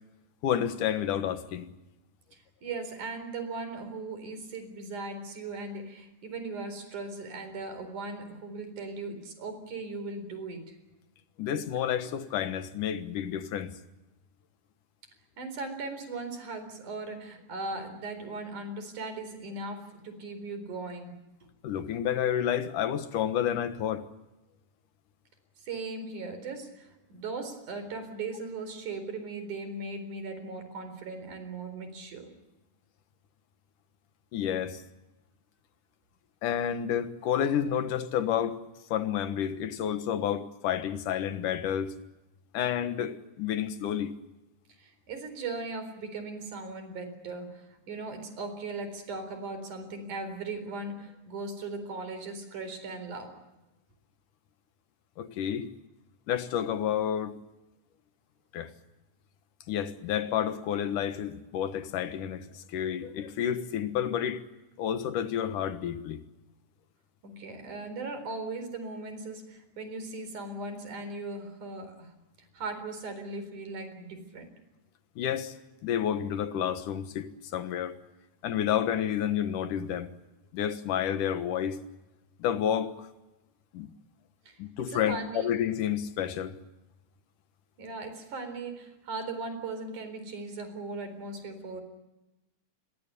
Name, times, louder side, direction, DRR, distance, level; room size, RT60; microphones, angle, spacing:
voice 1, 0.4-1.7 11.4-13.8 21.6-24.1 34.3-34.8 36.4-38.6 38.9-42.0 42.5-44.1 55.2-55.7 56.3-57.4 58.5-58.7 59.7-64.4 64.8-66.2 75.2-75.5 75.8-78.0 78.4-80.1 80.5-81.8 82.4-83.1 83.7-83.9 84.6-86.6, left 9 dB, 85° left, 2.9 m, -30 dB
voice 2, 2.3-10.8 15.4-21.2 25.6-32.3 44.8-53.3 67.2-72.1 72.5-74.5 84.5-84.6 84.9-85.5 87.8-91.8, right 3 dB, 75° right, 5.6 m, -38 dB
27.5 x 23.0 x 6.9 m
omnidirectional pair, 3.6 m